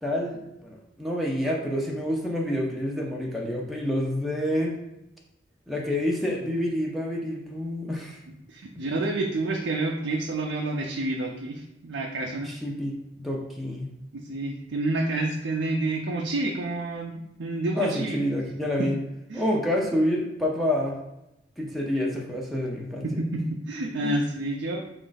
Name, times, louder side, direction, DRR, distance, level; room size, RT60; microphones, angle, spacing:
voice 1, 0.0-4.7 5.7-8.2 8.8-8.9 12.4-13.9 17.7-19.0 19.3-21.0 21.6-23.1 24.0-24.2, left 1 dB, ahead, -3 dB, 0.5 m, -28 dB
voice 2, 8.5-12.5 14.1-18.2 18.8-18.9 19.3-19.6 23.0-24.8, right 2 dB, 70° right, 0 dB, 0.4 m, -29 dB
4.8 x 2.5 x 3.9 m, 0.88 s
head